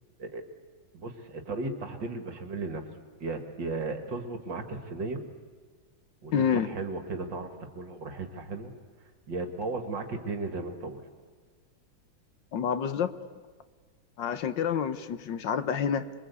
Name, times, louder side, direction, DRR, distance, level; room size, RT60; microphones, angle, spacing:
voice 1, 0.9-2.8 3.2-5.2 6.2-8.7 9.3-11.0, right 3 dB, 65° right, 6 dB, 2.5 m, -35 dB
voice 2, 6.3-6.7 12.5-13.1 14.2-16.1, left 7 dB, 70° left, 12 dB, 1.6 m, -28 dB
27.0 x 22.5 x 8.3 m, 1.5 s
omnidirectional pair, 2.2 m